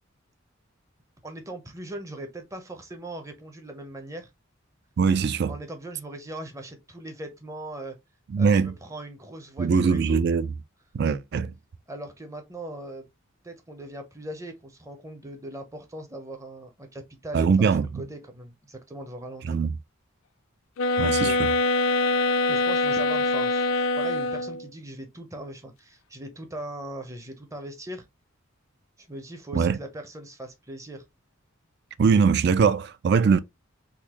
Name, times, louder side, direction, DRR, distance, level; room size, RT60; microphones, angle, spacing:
voice 1, 1.2-4.3 5.5-8.0 8.4-10.2 11.9-13.1 13.4-19.7 21.1-21.4 22.5-28.0 29.0-31.1, right 1 dB, 15° right, 0.6 m, -40 dB
voice 2, 5.0-5.5 8.3-8.7 9.6-10.5 10.9-11.5 17.3-17.9 19.4-19.7 21.0-21.5 29.5-29.8 32.0-33.4, right 5 dB, 50° right, 0.3 m, -22 dB
sound 1, 20.8-24.7, left 2 dB, 70° left, 0.4 m, -24 dB
3.8 x 2.6 x 2.9 m
head